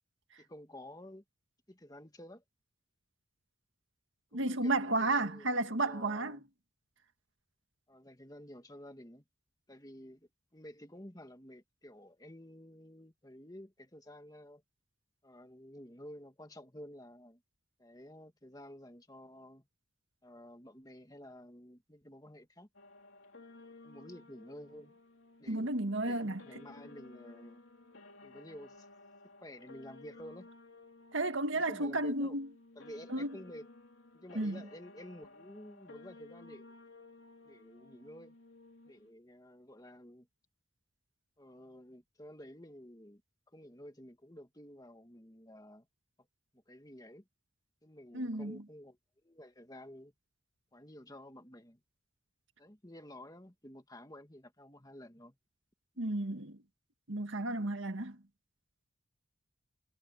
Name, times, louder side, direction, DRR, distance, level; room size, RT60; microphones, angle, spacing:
voice 1, 0.4-1.2 1.7-2.4 4.3-6.4 7.9-9.2 9.7-14.6 15.2-17.4 17.8-19.7 20.2-22.7 23.8-24.9 25.4-25.7 26.0-27.6 28.2-28.9 29.4-30.5 31.5-32.4 32.8-33.7 34.1-36.7 37.4-38.4 38.9-40.3 41.4-43.2 43.5-45.9 46.2-46.3 46.7-47.3 47.8-49.0 49.2-50.1 50.7-51.8 52.6-55.4, left 1 dB, 20° left, 1.9 m, -51 dB
voice 2, 4.3-6.4 25.5-26.4 31.1-32.5 33.1-33.4 34.3-34.6 48.1-48.6 56.0-56.6 57.1-58.2, right 2 dB, 75° right, 1.7 m, -33 dB
sound 1, 22.7-39.1, left 2 dB, 75° left, 3.0 m, -56 dB
head